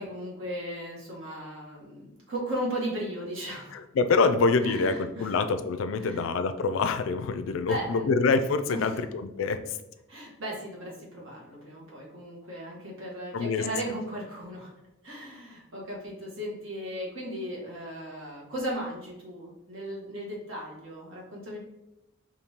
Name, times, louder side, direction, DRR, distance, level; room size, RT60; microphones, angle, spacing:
voice 1, 0.0-3.8 4.2-4.3 4.6-5.4 6.0-6.3 7.7-8.1 8.7-9.0 10.1-14.7 15.0-21.6, right 1 dB, 75° right, -4 dB, 1.3 m, -36 dB
voice 2, 3.7-9.8 13.3-13.6, left 4 dB, 75° left, 9 dB, 0.3 m, -26 dB
5.2 x 2.6 x 2.8 m, 0.92 s
head